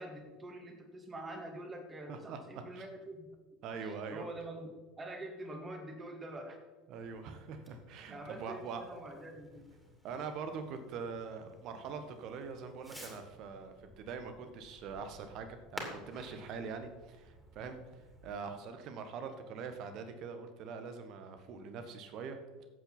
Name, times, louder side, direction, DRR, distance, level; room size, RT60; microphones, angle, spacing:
voice 1, 0.0-3.3 3.8-6.6 8.1-9.7, right 1 dB, 20° right, 4 dB, 2.3 m, -45 dB
voice 2, 2.1-2.8 3.6-4.2 6.9-8.8 9.1-9.2 10.0-22.7, right 5 dB, 45° right, 8 dB, 1.4 m, -43 dB
Fireworks, 7.0-18.3, equal, ahead, 3.0 m, -53 dB
14.0 x 8.3 x 4.1 m, 1.2 s
figure-of-eight pair, 70°, 0 cm